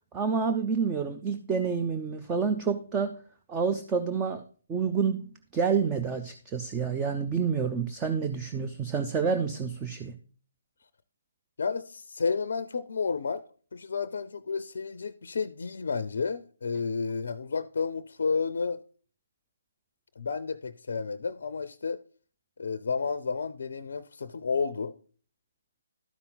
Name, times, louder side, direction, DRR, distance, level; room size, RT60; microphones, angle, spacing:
voice 1, 0.1-3.1 3.5-4.4 4.7-5.2 5.5-10.1, right 6 dB, 15° right, 0.6 m, -28 dB
voice 2, 11.6-13.4 13.7-18.8 20.2-22.0 22.6-25.0, left 5 dB, 60° left, 0.5 m, -31 dB
12.5 x 5.6 x 3.9 m
figure-of-eight pair, 145°, 0 cm